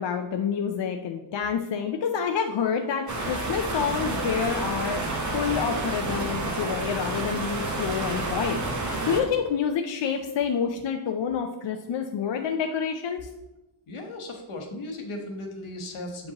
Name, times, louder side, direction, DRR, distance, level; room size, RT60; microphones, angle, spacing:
voice 1, 0.0-5.0 5.3-13.2, left 7 dB, 65° left, 4 dB, 0.5 m, -28 dB
sound 1, 3.1-9.2, right 2 dB, 35° right, 1.0 m, -29 dB
voice 2, 13.9-16.3, left 1 dB, 85° left, 3 dB, 1.2 m, -36 dB
7.2 x 5.2 x 2.9 m, 0.99 s
wide cardioid pair, 160°, 49 cm